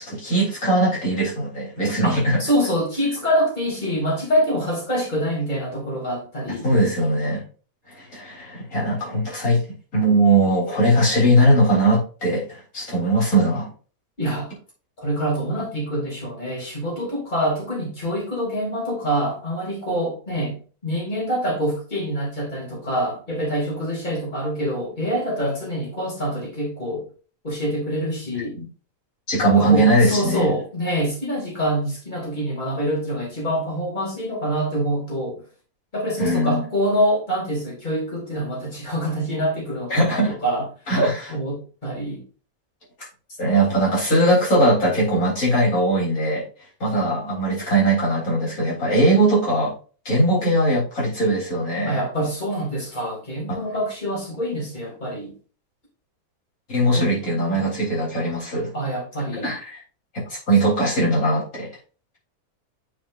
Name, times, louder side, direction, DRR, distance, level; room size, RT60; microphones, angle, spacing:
voice 1, 0.0-2.4 6.6-7.4 7.9-9.6 9.9-13.7 28.6-28.7 29.3-30.5 36.2-36.7 39.9-40.3 40.9-41.3 43.4-46.4 46.8-49.7 50.1-52.0 53.5-53.6 56.7-58.7 59.4-59.8 60.1-61.7, right 1 dB, 70° left, 4.0 m, -20 dB
voice 2, 2.0-6.7 14.2-14.5 15.0-27.0 27.4-28.5 29.4-35.4 35.9-40.7 41.3-42.2 51.8-55.3 56.9-57.1 57.4-57.7 58.7-59.5, equal, 30° left, 2.9 m, -25 dB
8.7 x 5.2 x 2.5 m
omnidirectional pair, 1.6 m